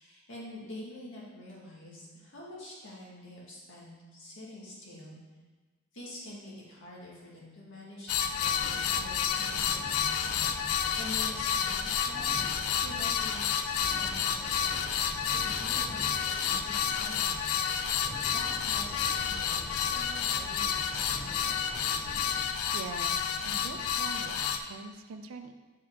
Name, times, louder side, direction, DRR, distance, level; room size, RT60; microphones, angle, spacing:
voice 1, 0.0-5.2 5.9-12.2 12.8-16.1 16.4-17.5 18.3-21.6, left 1 dB, 65° left, -5 dB, 1.8 m, -46 dB
sound 1, 8.1-24.6, left 7 dB, 85° left, 0.4 m, -30 dB
sound 2, 8.4-22.5, equal, ahead, 0.3 m, -45 dB
voice 2, 22.7-25.5, right 4 dB, 75° right, 7 dB, 0.5 m, -43 dB
6.1 x 4.7 x 3.6 m, 1.3 s
head